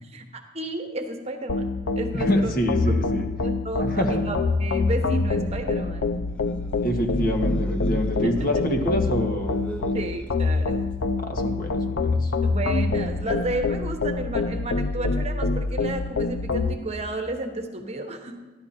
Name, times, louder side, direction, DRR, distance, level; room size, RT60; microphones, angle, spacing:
voice 1, 0.0-2.5 2.9-3.0 3.4-6.1 8.1-8.5 9.9-10.9 12.4-18.4, right 1 dB, 35° right, 4 dB, 1.1 m, -32 dB
sound 1, 1.5-16.7, left 3 dB, 70° left, 0.7 m, -26 dB
voice 2, 2.1-3.3 3.8-4.1 6.8-9.5 11.2-12.3, equal, 45° left, 2 dB, 1.8 m, -26 dB
sound 2, 6.2-11.3, right 1 dB, 5° left, 0.8 m, -42 dB
14.5 x 11.5 x 4.3 m, 1.2 s
head